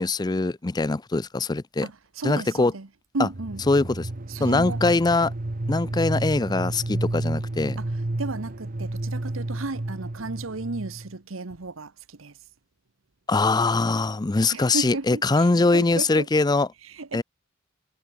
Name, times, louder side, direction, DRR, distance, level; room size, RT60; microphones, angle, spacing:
voice 1, 0.0-1.9 2.2-2.7 3.7-4.1 4.4-5.3 5.7-7.8 13.3-16.7 17.1-17.2, left 3 dB, 20° left, 0.5 m, -22 dB
voice 2, 1.8-2.9 3.1-3.6 4.3-5.0 7.8-7.9 8.2-12.4 14.5-16.3 16.8-17.2, right 3 dB, 90° right, 1.2 m, -34 dB
sound 1, 3.3-11.1, right 2 dB, 45° right, 1.0 m, -31 dB
head